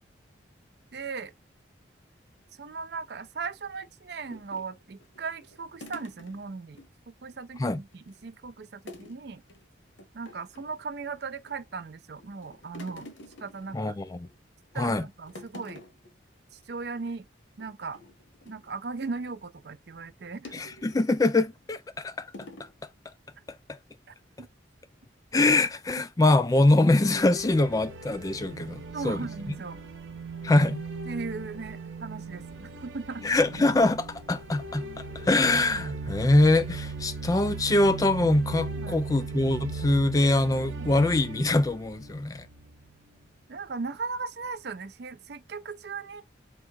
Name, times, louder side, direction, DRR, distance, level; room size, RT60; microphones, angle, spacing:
voice 1, 0.9-1.3 2.6-6.8 7.1-9.4 10.1-13.1 13.4-14.0 14.7-15.8 16.7-17.3 17.6-18.0 18.5-20.5 24.1-24.5 28.9-29.8 30.6-30.7 31.1-33.3 38.8-39.0 40.8-41.0 43.5-46.2, right 4 dB, 60° right, 0.5 m, -37 dB
sound 1, 4.3-6.9 7.2-7.3 7.6-8.3 8.9-9.2 9.5-9.7 10.0-10.8 11.3-11.9 12.2-14.3 14.7-15.0 15.3-16.1 16.5-16.6 16.9-17.2 17.6-19.4 20.4-21.1 21.7-21.9 22.3-22.7, left 2 dB, 75° left, 0.9 m, -48 dB
voice 2, 13.7-14.3 14.7-15.1 20.5-22.3 25.3-29.6 30.4-30.8 33.2-42.5, left 2 dB, 20° left, 0.3 m, -24 dB
sound 2, 26.8-42.9, right 4 dB, 90° right, 0.9 m, -38 dB
3.6 x 2.4 x 4.5 m
head